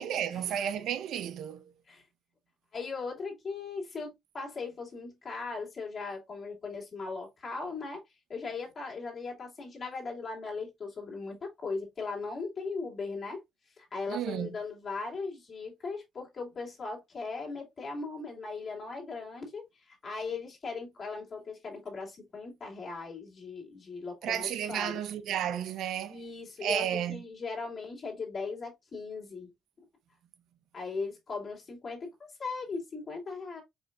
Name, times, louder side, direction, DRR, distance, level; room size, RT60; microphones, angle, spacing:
voice 1, 0.0-1.6 14.1-14.5 24.2-26.2 26.6-27.2, right 9 dB, 80° right, 0.6 m, -32 dB
voice 2, 2.7-8.0 8.3-13.4 13.8-25.0 26.1-29.5 30.7-33.6, left 4 dB, 45° left, 2.4 m, -38 dB
5.1 x 4.4 x 2.2 m
cardioid pair, 90°, 0 cm